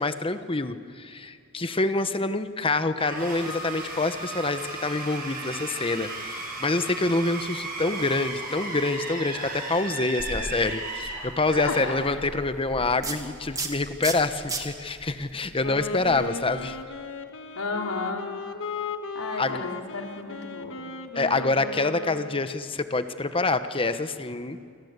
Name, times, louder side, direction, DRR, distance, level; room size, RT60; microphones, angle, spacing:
voice 1, 0.0-16.8 19.4-19.7 21.1-24.6, left 3 dB, 25° left, 10 dB, 1.0 m, -26 dB
sound 1, 3.0-12.5, right 2 dB, 40° right, 7.0 m, -35 dB
sound 2, 10.2-16.8, right 3 dB, 15° right, 2.2 m, -38 dB
Wind instrument woodwind instrument, 15.5-22.7, left 4 dB, 60° left, 1.6 m, -36 dB
voice 2, 17.6-18.2 19.1-20.8, left 3 dB, 85° left, 2 dB, 3.2 m, -33 dB
28.5 x 24.0 x 8.2 m, 2.3 s
head